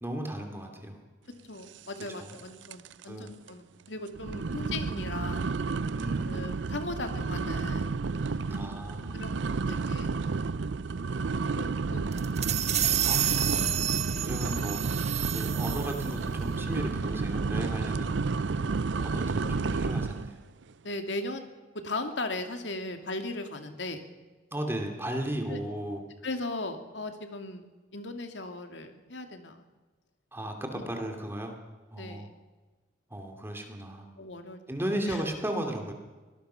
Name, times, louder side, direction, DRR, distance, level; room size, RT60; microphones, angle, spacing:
voice 1, 0.0-1.0 2.2-2.3 3.1-3.3 4.4-4.6 5.9-6.5 8.4-9.2 12.4-13.9 14.3-15.0 15.3-18.2 19.0-20.4 24.5-26.0 30.3-31.6 31.9-32.3 33.1-34.1 34.7-35.9, right 1 dB, 15° right, 3 dB, 2.6 m, -35 dB
voice 2, 1.4-5.5 6.3-7.9 9.1-10.1 11.5-11.6 11.9-12.2 14.1-14.3 19.4-19.8 20.8-21.5 21.8-24.0 25.5-25.6 26.2-27.7 27.9-29.6 30.7-30.9 32.0-32.3 34.2-34.6 35.1-35.2, left 2 dB, 75° left, 6 dB, 2.4 m, -37 dB
sound 1, 2.0-2.4 2.6-3.0 3.5-3.6 4.1-20.3, right 4 dB, 75° right, 0.5 m, -31 dB
sound 2, 12.1-16.1, right 10 dB, 40° right, 1.0 m, -29 dB
24.5 x 19.5 x 5.8 m, 1.3 s
head